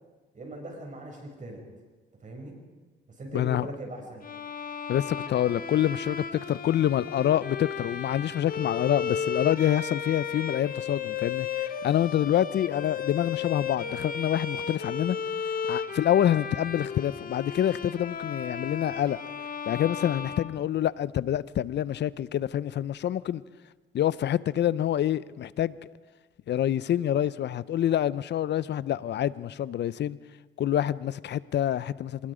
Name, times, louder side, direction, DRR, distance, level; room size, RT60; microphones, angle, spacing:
voice 1, 0.3-1.6 2.2-2.5 3.1-4.2, right 1 dB, 40° right, 6.8 m, -40 dB
voice 2, 3.3-3.7 4.9-15.2 15.7-19.2 19.7-23.4 23.9-25.8 26.5-30.2 30.6-32.3, left 11 dB, 60° left, 0.7 m, -27 dB
Bowed string instrument, 4.2-21.2, left 7 dB, 45° left, 1.4 m, -34 dB
25.5 x 20.5 x 5.1 m
cardioid pair, 90°, 20 cm